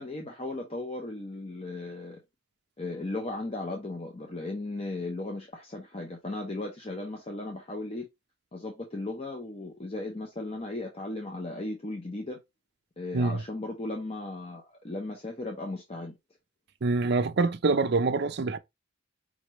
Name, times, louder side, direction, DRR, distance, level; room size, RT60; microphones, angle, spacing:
voice 1, 0.0-2.2 2.8-8.1 8.5-12.4 13.0-16.2, left 2 dB, 25° left, 0.7 m, -36 dB
voice 2, 16.8-18.6, right 3 dB, 50° right, 0.5 m, -25 dB
5.0 x 3.3 x 3.0 m
head